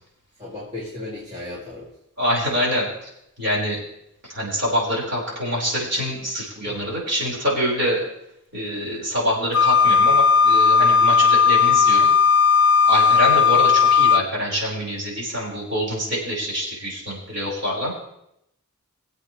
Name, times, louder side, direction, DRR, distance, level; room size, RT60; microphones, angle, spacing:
voice 1, 0.4-1.9 6.6-6.7, left 2 dB, 25° right, -8 dB, 2.7 m, -35 dB
voice 2, 2.2-2.9 3.4-3.8 4.3-8.0 8.5-12.1 12.9-17.9, equal, 50° right, -5 dB, 4.9 m, -25 dB
Wind instrument woodwind instrument, 9.5-14.2, left 6 dB, 60° left, 0.8 m, -16 dB
21.5 x 8.1 x 3.2 m, 0.78 s
head